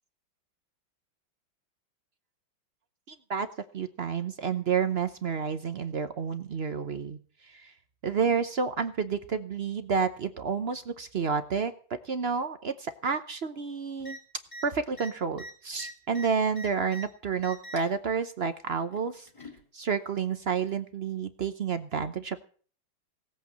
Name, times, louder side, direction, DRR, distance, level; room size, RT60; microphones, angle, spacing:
voice 1, 3.1-3.5 3.7-7.7 8.0-14.2 14.6-19.3 19.7-22.4, right 6 dB, 60° right, 10 dB, 0.6 m, -30 dB
sound 1, 14.0-14.2 14.5-14.6 14.9-17.0 17.4-17.9 18.9-19.6 20.7-20.8, equal, 15° left, 2.9 m, -43 dB
17.5 x 8.2 x 7.4 m, 0.43 s
omnidirectional pair, 2.2 m